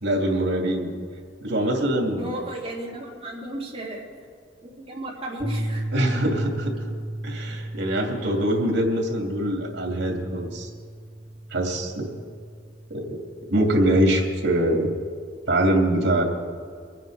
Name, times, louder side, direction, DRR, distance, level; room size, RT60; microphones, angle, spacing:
voice 1, 0.0-0.9 1.4-2.4 5.9-6.8 7.2-10.7 11.5-12.0 12.9-13.2 13.5-14.9 15.5-16.2, right 1 dB, 75° right, 2 dB, 2.8 m, -23 dB
voice 2, 2.2-4.1 4.6-5.8, right 1 dB, 30° right, -5 dB, 3.5 m, -34 dB
sound 1, 5.4-13.8, right 1 dB, 60° left, 1.9 m, -34 dB
23.5 x 9.4 x 5.0 m, 2.1 s
head